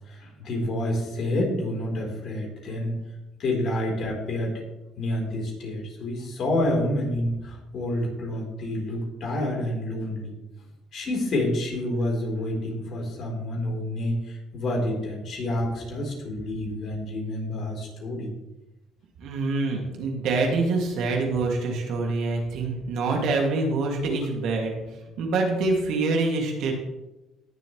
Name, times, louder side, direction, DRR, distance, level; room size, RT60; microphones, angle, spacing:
voice 1, 0.1-2.9 3.4-4.6 5.0-10.3 10.9-18.3, left 1 dB, 60° left, -1 dB, 4.4 m, -28 dB
voice 2, 19.2-24.8 25.2-26.7, right 3 dB, 70° right, 1 dB, 2.7 m, -25 dB
19.0 x 7.3 x 3.4 m, 1.0 s
supercardioid pair, 65°, 0 cm